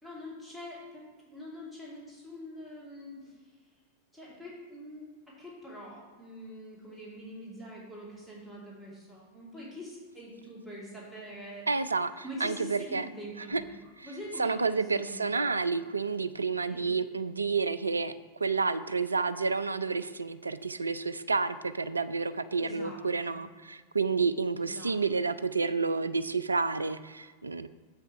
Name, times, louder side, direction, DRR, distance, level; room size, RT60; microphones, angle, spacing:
voice 1, 0.0-3.4 4.1-11.7 12.2-15.5 16.7-16.9 22.6-23.5 24.6-25.0, equal, 5° right, -6 dB, 2.7 m, -44 dB
voice 2, 11.7-13.1 13.5-13.6 14.4-18.1 18.4-27.7, right 4 dB, 80° right, 14 dB, 0.3 m, -30 dB
7.5 x 5.6 x 5.9 m, 1.4 s
figure-of-eight pair, 90°, 0 cm